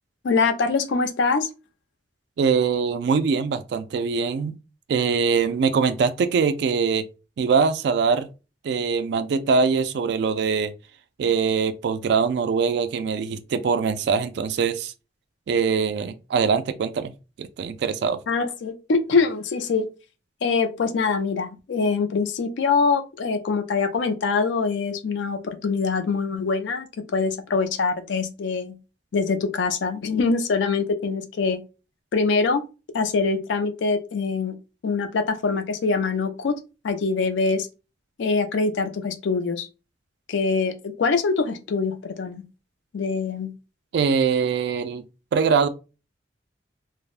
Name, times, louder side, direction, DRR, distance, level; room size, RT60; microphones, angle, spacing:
voice 1, 0.2-1.5 18.3-19.9 20.4-26.9 27.1-28.8 29.1-31.6 32.1-32.6 32.9-34.6 34.8-36.6 36.8-37.7 38.2-39.7 40.3-42.4 42.9-43.5, left 4 dB, 75° left, 0.4 m, -24 dB
voice 2, 2.4-4.5 4.9-7.1 7.4-8.3 8.6-10.7 11.2-14.9 15.5-17.1 17.4-18.2 43.9-45.0 45.3-45.7, right 5 dB, 65° right, 0.3 m, -22 dB
3.3 x 2.0 x 2.4 m
head